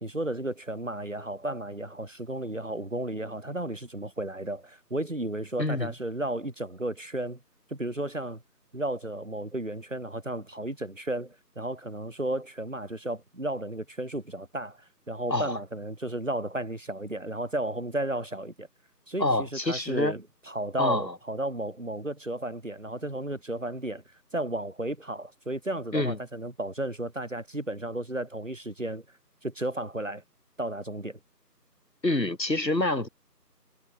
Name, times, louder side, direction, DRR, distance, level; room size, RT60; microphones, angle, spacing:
voice 1, 0.0-7.4 7.7-8.4 8.7-18.7 19.1-24.0 24.3-29.0 29.4-30.2 30.6-31.2, right 1 dB, 50° right, 2.3 m, -33 dB
voice 2, 5.6-5.9 15.3-15.6 19.2-20.1 20.8-21.1 25.9-26.2 32.0-33.1, left 2 dB, 85° left, 2.9 m, -27 dB
figure-of-eight pair, 175°, 49 cm